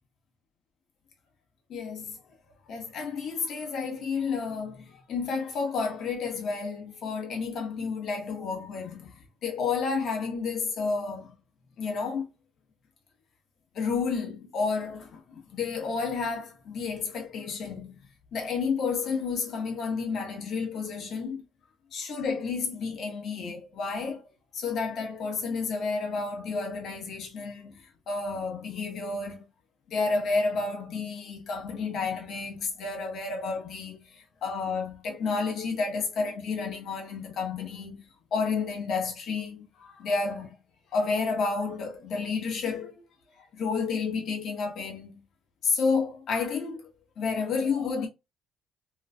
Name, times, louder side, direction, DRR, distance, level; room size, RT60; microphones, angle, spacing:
voice 1, 1.7-2.2 2.7-11.3 11.8-12.3 13.7-18.0 18.3-21.4 21.9-24.2 24.5-29.5 29.9-40.6 40.9-42.9 43.4-45.2 45.6-46.9 47.2-48.1, left 4 dB, 50° left, 1.2 m, -31 dB
3.1 x 3.1 x 2.3 m
cardioid pair, 160°, 0 cm